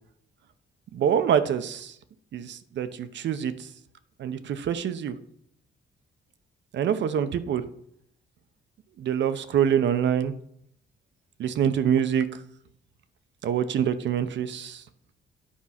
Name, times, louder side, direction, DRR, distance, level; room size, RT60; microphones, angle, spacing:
voice 1, 0.9-2.0 2.3-3.7 4.2-5.1 6.7-7.7 9.0-10.3 11.4-12.4 13.4-14.8, right 8 dB, 65° right, 11 dB, 0.8 m, -25 dB
10.0 x 4.7 x 5.7 m, 0.70 s
cardioid pair, 90°, 20 cm